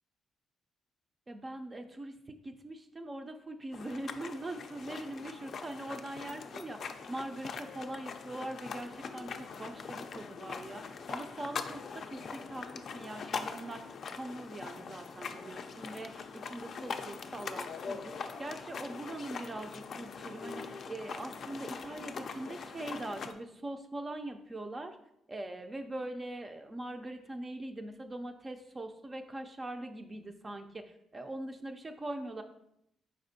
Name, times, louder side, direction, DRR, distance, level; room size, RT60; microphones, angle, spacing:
voice 1, 1.3-2.1 2.4-18.1 18.4-25.0 25.3-32.4, right 1 dB, 25° right, 6 dB, 0.4 m, -42 dB
sound 1, 3.7-23.3, left 5 dB, 55° left, 0.4 m, -42 dB
4.7 x 4.2 x 2.7 m, 0.78 s
cardioid pair, 90°, 0 cm